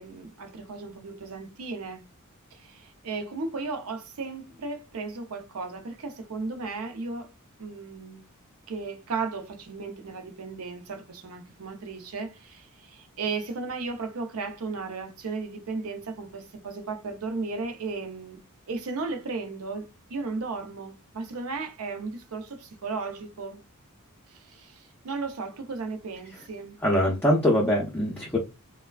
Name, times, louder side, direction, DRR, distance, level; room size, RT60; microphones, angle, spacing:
voice 1, 0.0-2.0 2.5-7.3 7.6-8.2 8.7-18.4 18.7-23.6 24.3-26.8, right 4 dB, 85° right, 0.6 m, -35 dB
voice 2, 26.8-28.4, left 1 dB, 10° left, 0.5 m, -23 dB
3.2 x 2.1 x 2.3 m
head